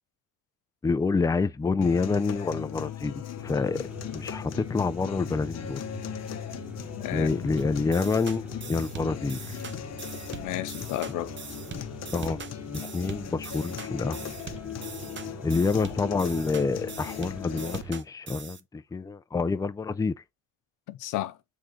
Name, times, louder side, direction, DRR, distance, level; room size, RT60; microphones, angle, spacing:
voice 1, 0.8-3.8 4.1-5.8 7.1-9.6 12.1-12.4 12.7-14.3 15.4-20.1, left 4 dB, 10° left, 0.4 m, -27 dB
sound 1, 1.8-17.8, left 10 dB, 60° left, 0.8 m, -38 dB
sound 2, 3.4-18.0, right 4 dB, 5° right, 1.1 m, -45 dB
voice 2, 7.0-7.8 10.3-11.3 20.9-21.4, left 14 dB, 90° left, 0.7 m, -33 dB
sound 3, 7.6-18.6, right 6 dB, 40° right, 0.9 m, -43 dB
6.5 x 3.7 x 3.9 m
cardioid pair, 90°, 30 cm